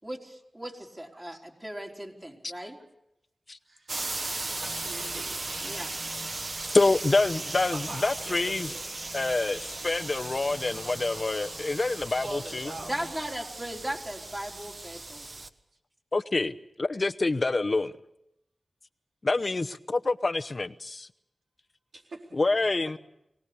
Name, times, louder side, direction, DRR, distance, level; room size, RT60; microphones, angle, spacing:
voice 1, 0.0-2.8 5.6-5.9 12.8-15.3, right 1 dB, 25° right, -1 dB, 3.9 m, -37 dB
voice 2, 1.1-1.4 3.7-3.9 4.3-5.3 7.7-8.9 12.2-12.9 21.9-22.3, right 2 dB, 80° right, 0 dB, 4.2 m, -42 dB
sound 1, 3.9-15.5, right 2 dB, 50° right, 1.3 m, -37 dB
sound 2, 4.5-13.3, left 4 dB, 75° left, 1.9 m, -49 dB
voice 3, 6.7-8.7 9.1-12.7 16.1-17.9 19.2-21.1 22.3-23.0, left 3 dB, 45° left, 11 dB, 0.9 m, -27 dB
24.5 x 18.5 x 6.9 m, 0.82 s
wide cardioid pair, 75°, 0 cm